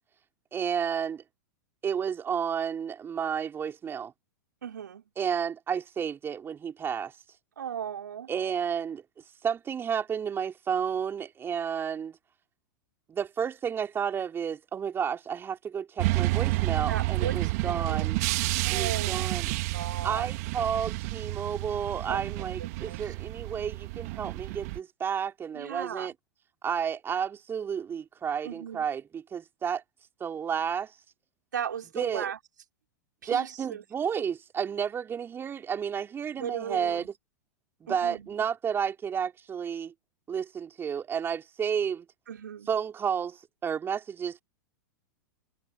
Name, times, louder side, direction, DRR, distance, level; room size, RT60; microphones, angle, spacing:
voice 1, 0.5-1.2 1.8-4.1 5.2-7.1 8.3-9.0 9.4-12.2 13.1-18.2 18.7-19.5 20.0-26.1 26.6-29.8 30.2-30.9 31.9-32.3 33.3-37.1 37.8-39.9 40.3-42.1 42.7-44.4, right 7 dB, 25° right, 3.9 m, -31 dB
voice 2, 4.6-5.0 7.6-8.3 16.9-18.1 18.6-19.3 19.7-20.3 22.1-23.1 25.5-26.1 28.4-28.9 31.5-32.4 33.2-33.8 36.3-37.1 37.9-38.3 42.3-42.7, right 8 dB, 75° right, 3.9 m, -37 dB
sound 1, 16.0-24.8, right 22 dB, 55° right, 2.1 m, -30 dB
hypercardioid pair, 100°, 10 cm